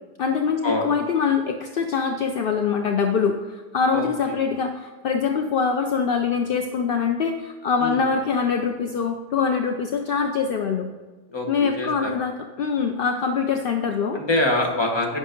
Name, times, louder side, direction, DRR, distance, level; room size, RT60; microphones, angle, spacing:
voice 1, 0.2-10.9 11.5-14.2, left 6 dB, 65° left, 5 dB, 0.8 m, -24 dB
voice 2, 3.9-4.4 7.8-8.0 11.3-12.1 14.1-15.2, left 2 dB, 25° left, -1 dB, 1.4 m, -25 dB
10.0 x 6.1 x 5.2 m, 1.3 s
omnidirectional pair, 1.1 m